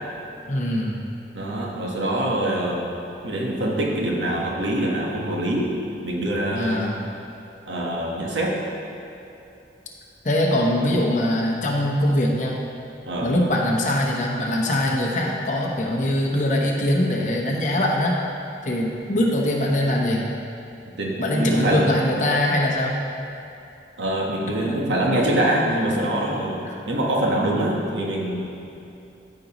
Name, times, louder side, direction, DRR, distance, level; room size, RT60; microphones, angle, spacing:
voice 1, 0.4-1.0 6.5-7.0 10.2-12.6 13.2-18.2 18.6-20.2 21.2-23.0 24.4-24.7 26.6-26.8, left 1 dB, 40° left, -2 dB, 1.0 m, -22 dB
voice 2, 1.3-2.9 3.2-5.7 6.0-6.9 7.7-8.6 13.0-13.3 21.0-21.9 24.0-28.6, right 1 dB, 90° right, -2 dB, 1.3 m, -24 dB
13.5 x 5.3 x 3.0 m, 2.8 s
head